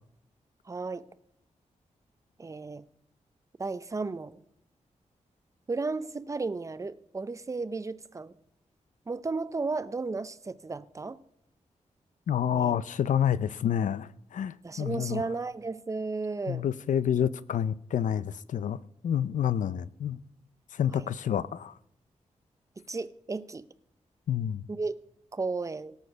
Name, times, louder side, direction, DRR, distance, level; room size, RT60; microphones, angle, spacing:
voice 1, 0.7-1.1 2.4-2.8 3.6-4.4 5.7-8.3 9.1-11.2 12.5-12.8 14.6-16.6 20.9-21.1 22.9-23.7 24.7-25.0 25.3-26.0, right 3 dB, 25° right, 0.6 m, -34 dB
voice 2, 12.3-15.2 16.5-20.2 20.7-21.7 24.3-24.6, left 9 dB, 90° left, 0.5 m, -28 dB
17.5 x 6.5 x 6.7 m
wide cardioid pair, 115°, 13 cm